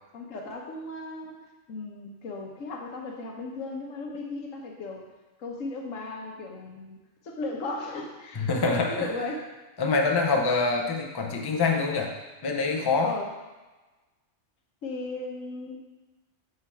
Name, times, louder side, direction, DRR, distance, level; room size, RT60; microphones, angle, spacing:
voice 1, 0.1-5.1 5.4-7.0 7.2-8.5 8.9-9.4 13.0-13.3 14.8-15.8, left 2 dB, 75° left, 1 dB, 1.3 m, -36 dB
voice 2, 8.4-9.1 9.8-12.1 12.4-13.1, left 4 dB, 30° left, 2 dB, 0.4 m, -25 dB
6.2 x 3.9 x 4.5 m, 1.2 s
omnidirectional pair, 1.4 m